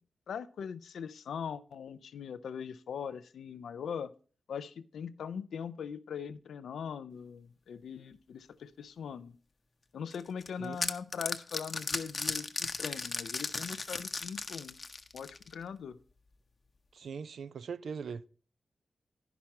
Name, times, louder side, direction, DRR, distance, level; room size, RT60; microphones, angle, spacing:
voice 1, 0.3-4.1 4.5-9.3 9.9-14.7 15.1-16.0, left 7 dB, 80° left, 0.4 m, -41 dB
sound 1, 10.1-15.6, left 3 dB, 45° left, 0.8 m, -36 dB
voice 2, 16.9-18.3, right 6 dB, 75° right, 0.4 m, -40 dB
10.5 x 6.0 x 4.2 m
supercardioid pair, 40°, 0 cm